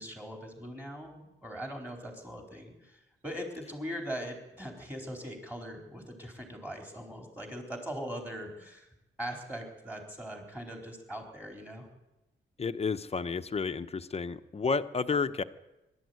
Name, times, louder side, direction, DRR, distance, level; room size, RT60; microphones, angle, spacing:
voice 1, 0.0-8.9 9.2-11.9, equal, 10° right, 2 dB, 4.1 m, -41 dB
voice 2, 12.6-15.4, left 4 dB, 30° left, 10 dB, 0.8 m, -31 dB
24.0 x 12.5 x 9.5 m, 0.97 s
wide cardioid pair, 175°, 21 cm